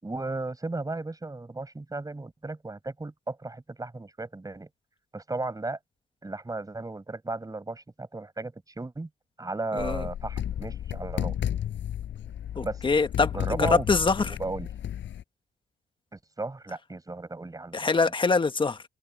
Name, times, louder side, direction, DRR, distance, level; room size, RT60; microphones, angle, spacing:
voice 1, 0.0-4.7 5.1-5.8 6.2-9.1 9.4-11.4 12.6-12.8 13.3-13.9 14.2-14.7 16.1-17.9, right 2 dB, 20° right, 6.6 m, -35 dB
voice 2, 9.7-10.1 12.6-14.3 17.7-18.8, left 4 dB, 25° left, 1.5 m, -24 dB
sound 1, 9.8-15.2, left 10 dB, 70° left, 5.1 m, -33 dB
cardioid pair, 90°, 20 cm